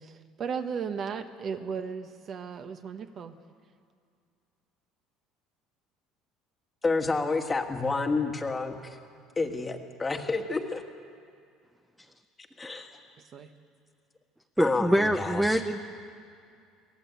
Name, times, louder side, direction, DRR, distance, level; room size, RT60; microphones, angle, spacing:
voice 1, 0.0-3.4 13.3-13.5, right 6 dB, 35° right, 8 dB, 1.0 m, -35 dB
voice 2, 6.8-9.0 9.4-10.8 12.6-12.9 14.6-15.6, left 3 dB, 15° left, 5 dB, 1.5 m, -29 dB
voice 3, 14.6-15.8, equal, 5° right, 6 dB, 0.7 m, -25 dB
22.5 x 17.5 x 8.2 m, 2.3 s
cardioid pair, 150°, 0 cm